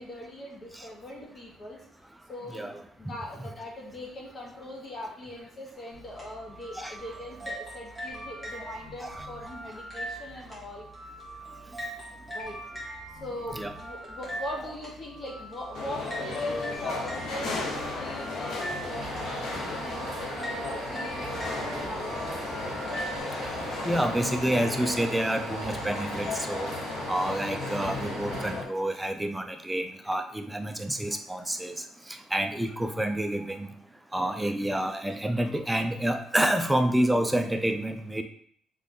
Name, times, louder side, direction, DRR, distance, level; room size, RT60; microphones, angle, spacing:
voice 1, 0.0-1.8 2.3-10.9 12.3-12.6 13.2-19.1 19.7-22.5, left 1 dB, 30° left, -1 dB, 1.0 m, -41 dB
voice 2, 2.5-2.8 6.8-7.0 8.6-8.7 9.0-9.3 13.5-13.8 23.8-26.7 27.1-33.7 34.1-38.2, right 1 dB, 5° right, 5 dB, 0.4 m, -28 dB
sound 1, 5.9-23.2, right 1 dB, 10° left, 1.4 m, -41 dB
sound 2, 15.7-28.6, left 3 dB, 60° left, 0.9 m, -35 dB
sound 3, 18.9-28.6, right 3 dB, 50° right, 1.4 m, -39 dB
3.8 x 3.2 x 3.7 m, 0.63 s
cardioid pair, 160°, 0 cm